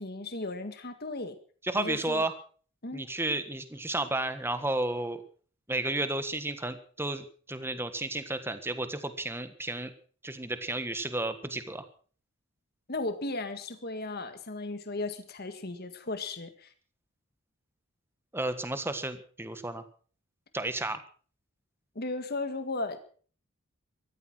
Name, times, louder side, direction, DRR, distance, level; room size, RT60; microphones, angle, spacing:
voice 1, 0.0-1.4 1.7-2.3 2.8-3.1 12.9-16.7 22.0-23.0, left 2 dB, 45° left, 9 dB, 1.8 m, -35 dB
voice 2, 1.6-2.3 2.9-5.2 5.7-9.9 10.2-11.8 18.3-19.8 20.5-21.0, right 2 dB, 10° right, 10 dB, 1.4 m, -32 dB
15.5 x 13.5 x 6.1 m, 0.43 s
head